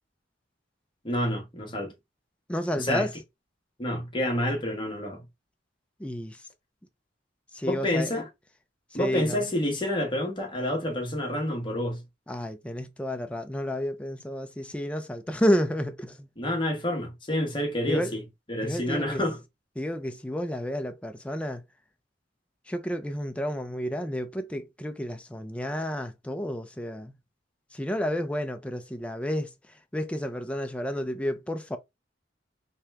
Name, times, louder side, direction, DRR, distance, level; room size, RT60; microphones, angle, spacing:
voice 1, 1.0-1.9 2.8-3.1 3.8-5.2 7.7-8.3 8.9-12.0 16.4-18.2 18.5-19.4, left 1 dB, 25° left, 1.2 m, -28 dB
voice 2, 2.5-3.1 6.0-6.5 7.5-8.1 8.9-9.5 12.3-16.3 17.9-18.2 18.6-19.2 19.8-21.6 22.7-27.1 27.7-31.8, equal, 5° left, 0.4 m, -31 dB
3.3 x 2.8 x 3.4 m
head